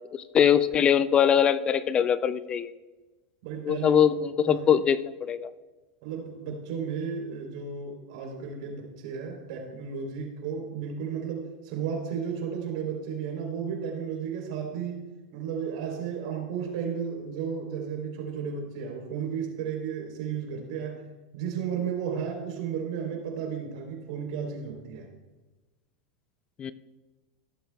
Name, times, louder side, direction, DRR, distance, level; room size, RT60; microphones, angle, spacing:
voice 1, 0.1-2.7 3.6-5.5 26.6-26.7, left 8 dB, 25° left, 15 dB, 0.3 m, -22 dB
voice 2, 3.4-4.0 4.5-4.8 6.0-15.0 15.3-21.0 21.3-25.1, right 7 dB, 65° right, 2 dB, 3.2 m, -33 dB
16.0 x 7.8 x 2.3 m, 1.2 s
supercardioid pair, 130°, 4 cm